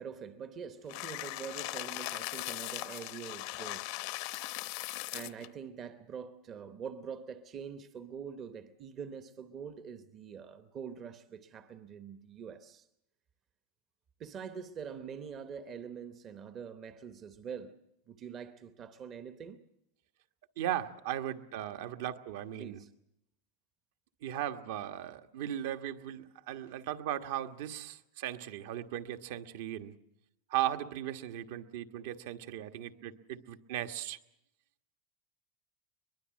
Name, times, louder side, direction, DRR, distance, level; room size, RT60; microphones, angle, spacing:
voice 1, 0.0-3.9 5.1-12.9 14.2-17.8 18.1-19.6 22.6-22.9, right 7 dB, 25° right, 0.9 m, -44 dB
sound 1, 0.9-5.5, left 19 dB, 45° left, 0.8 m, -39 dB
voice 2, 20.6-22.8 24.2-29.9 30.5-34.2, right 12 dB, 60° right, 1.3 m, -37 dB
22.5 x 21.5 x 7.5 m
supercardioid pair, 175°, 0 cm